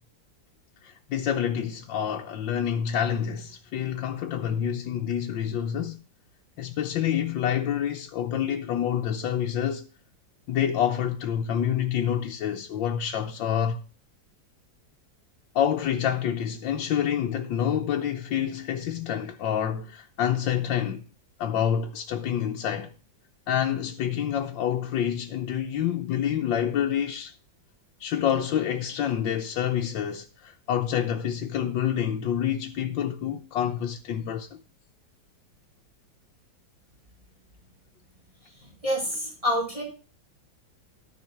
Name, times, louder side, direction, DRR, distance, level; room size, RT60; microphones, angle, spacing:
voice 1, 0.8-6.0 6.6-9.8 10.5-13.8 15.5-21.0 21.4-22.9 23.5-27.3 28.0-34.6, left 9 dB, 85° left, 1.5 m, -27 dB
voice 2, 38.6-39.8, equal, 15° right, 3.9 m, -28 dB
13.0 x 5.2 x 5.8 m
omnidirectional pair, 2.0 m